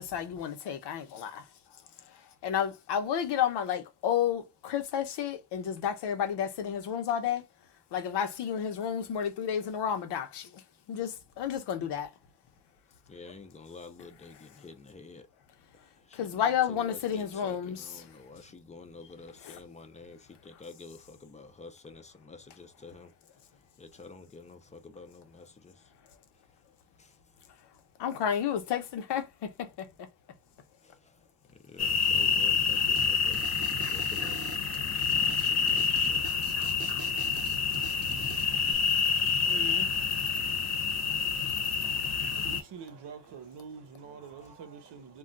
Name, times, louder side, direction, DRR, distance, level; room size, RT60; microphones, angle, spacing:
voice 1, 0.0-1.4 2.4-7.4 7.9-10.5 10.9-12.1 16.1-18.0 19.4-19.6 28.0-29.9 39.5-39.9, left 9 dB, 80° left, 0.7 m, -31 dB
voice 2, 13.1-15.3 16.1-23.1 23.8-25.7 27.0-27.1 31.7-36.2, left 3 dB, 20° left, 0.3 m, -49 dB
sound 1, 31.8-42.6, left 6 dB, 40° left, 0.7 m, -28 dB
sound 2, 33.0-33.1 33.3-38.7, right 4 dB, 35° right, 0.6 m, -44 dB
voice 3, 42.4-45.2, right 6 dB, 85° right, 0.8 m, -45 dB
2.3 x 2.2 x 3.8 m
wide cardioid pair, 150°, 40 cm